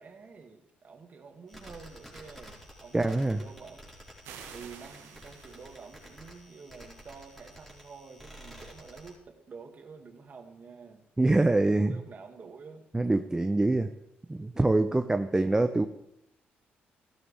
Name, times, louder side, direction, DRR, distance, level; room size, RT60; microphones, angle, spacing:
voice 1, 0.0-3.9 4.5-11.1 11.5-12.9, right 5 dB, 45° right, 4 dB, 2.0 m, -48 dB
sound 1, 1.5-9.1, equal, 5° left, 4.1 m, -51 dB
voice 2, 2.9-3.4 11.2-12.0 12.9-13.9 14.3-15.9, right 2 dB, 15° right, 7 dB, 0.6 m, -25 dB
sound 2, 4.2-6.3, right 8 dB, 90° right, 1.3 m, -49 dB
15.0 x 12.5 x 3.3 m, 0.82 s
cardioid pair, 80°, 4 cm